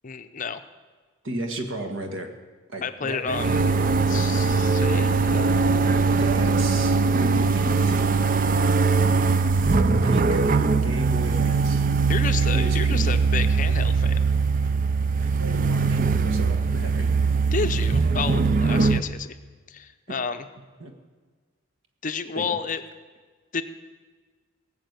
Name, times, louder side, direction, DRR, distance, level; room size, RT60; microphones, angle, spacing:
voice 1, 0.0-0.6 2.8-3.6 4.1-6.2 12.1-14.2 17.5-19.4 19.7-20.5 22.0-22.8 23.5-23.6, left 5 dB, 35° left, 9 dB, 0.6 m, -31 dB
voice 2, 1.2-2.3 2.7-3.6 6.1-8.0 9.8-11.9 12.2-13.2 14.6-14.7 15.2-17.1 20.1-20.2 20.8-20.9 22.3-22.4, right 1 dB, 60° right, 5 dB, 1.6 m, -34 dB
sound 1, 3.3-19.0, right 4 dB, 40° right, 0.4 m, -21 dB
18.0 x 7.1 x 8.1 m, 1.5 s
head